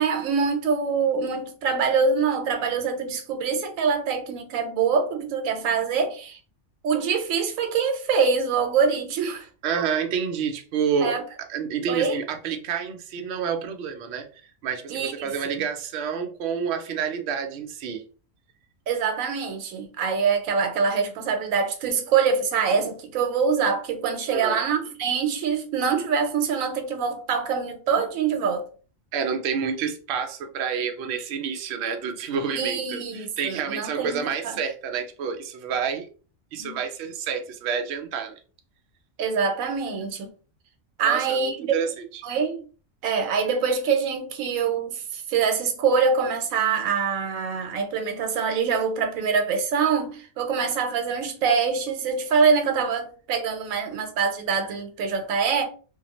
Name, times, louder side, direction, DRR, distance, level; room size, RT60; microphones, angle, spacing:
voice 1, 0.0-6.4 6.8-9.5 11.0-11.2 11.9-12.2 14.9-15.6 18.9-28.7 32.5-34.6 36.6-36.8 39.2-40.3 41.0-41.8 42.2-42.6 43.0-55.6, right 5 dB, 90° right, 1.0 m, -24 dB
voice 2, 9.6-11.1 11.5-18.0 22.8-22.9 24.3-24.6 29.1-36.1 36.5-38.4 41.0-42.2, right 6 dB, 65° right, 0.7 m, -29 dB
2.6 x 2.2 x 2.9 m
omnidirectional pair, 1.4 m